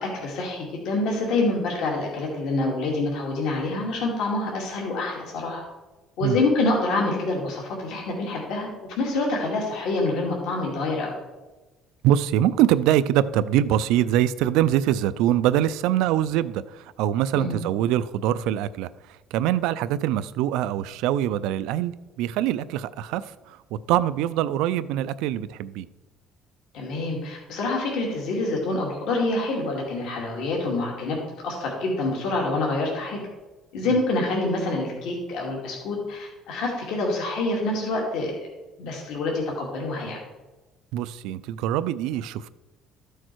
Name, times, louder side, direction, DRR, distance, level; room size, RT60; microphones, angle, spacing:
voice 1, 0.0-5.6 6.2-8.7 9.0-11.1 17.3-17.6 26.7-33.2 33.7-38.3 38.8-40.2, left 2 dB, 65° left, 2.3 m, -26 dB
voice 2, 12.0-25.9 40.9-42.5, right 12 dB, 80° right, 0.4 m, -24 dB
13.5 x 6.5 x 4.6 m
cardioid pair, 175°, 0 cm